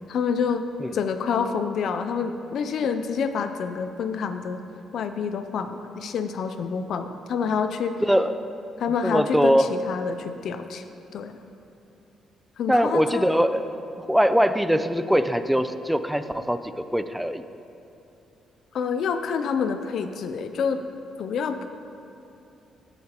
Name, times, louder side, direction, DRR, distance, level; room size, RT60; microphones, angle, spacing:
voice 1, 0.1-0.7 0.9-4.6 4.9-8.0 8.8-10.8 11.1-11.4 12.6-13.3 18.7-20.8 21.2-21.7, left 6 dB, 70° left, 9 dB, 0.4 m, -27 dB
voice 2, 8.0-8.4 9.0-9.7 12.7-17.4, equal, 5° right, 10 dB, 0.4 m, -22 dB
14.5 x 7.3 x 2.9 m, 2.8 s
cardioid pair, 90°, 0 cm